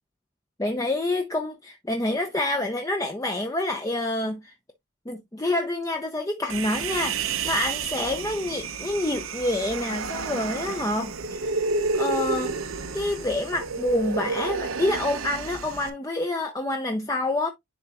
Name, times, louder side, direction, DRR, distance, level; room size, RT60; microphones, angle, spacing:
voice 1, 0.6-4.5 5.1-11.6 11.9-12.5 12.9-17.5, left 1 dB, 15° left, 0.6 m, -27 dB
Human voice, 6.5-15.9, right 4 dB, 80° right, 0.9 m, -30 dB
10.5 x 4.1 x 2.4 m
head